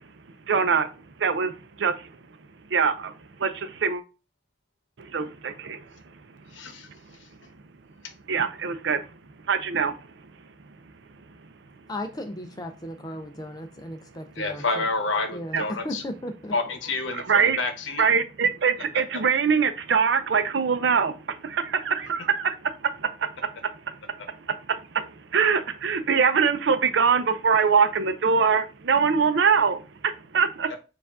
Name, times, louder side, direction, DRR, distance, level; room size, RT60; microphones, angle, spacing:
voice 1, 0.5-0.9 1.2-1.5 1.8-1.9 2.7-2.9 3.4-3.5 3.8-4.0 5.1-5.5 8.3-9.0 9.5-9.9 15.5-15.6 17.1-17.6 18.0-21.1 21.9-22.5 25.3-29.8 30.3-30.7, right 6 dB, 70° right, 0.5 m, -22 dB
voice 2, 6.5-6.9 14.4-16.0 16.5-18.0 30.7-30.8, left 3 dB, 85° left, 0.8 m, -28 dB
voice 3, 11.9-14.9 15.3-16.5, left 1 dB, 20° left, 0.4 m, -36 dB
4.6 x 2.5 x 3.5 m
head